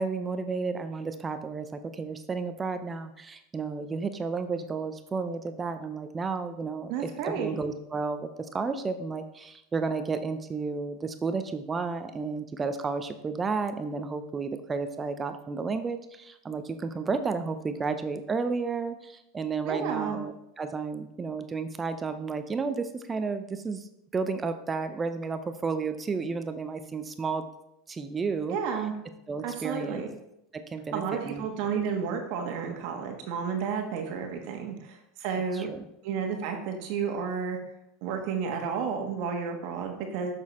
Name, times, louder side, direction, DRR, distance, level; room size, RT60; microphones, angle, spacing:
voice 1, 0.0-27.5 27.9-28.6 29.3-30.0 30.5-31.5 35.3-35.8, right 4 dB, 20° right, 9 dB, 0.6 m, -32 dB
voice 2, 6.9-7.6 19.6-20.2 28.5-28.9 29.4-30.1 30.9-35.7 36.0-37.6 38.0-40.3, right 6 dB, 60° right, 3 dB, 1.3 m, -31 dB
7.1 x 6.3 x 4.2 m, 0.81 s
supercardioid pair, 115°, 0 cm